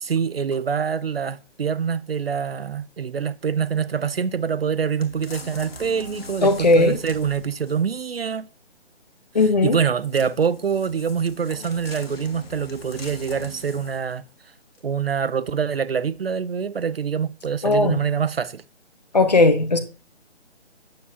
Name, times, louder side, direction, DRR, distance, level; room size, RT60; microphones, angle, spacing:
voice 1, 0.0-8.5 9.6-14.2 14.8-18.6, right 7 dB, 60° right, 0.5 m, -25 dB
sound 1, 5.0-8.0 10.0-14.2 14.7-14.8, left 2 dB, 60° left, 1.9 m, -41 dB
voice 2, 6.4-7.0 9.3-9.8 17.6-18.0 19.1-19.8, left 2 dB, 35° left, 0.8 m, -17 dB
8.5 x 7.5 x 2.7 m
hypercardioid pair, 175°, 34 cm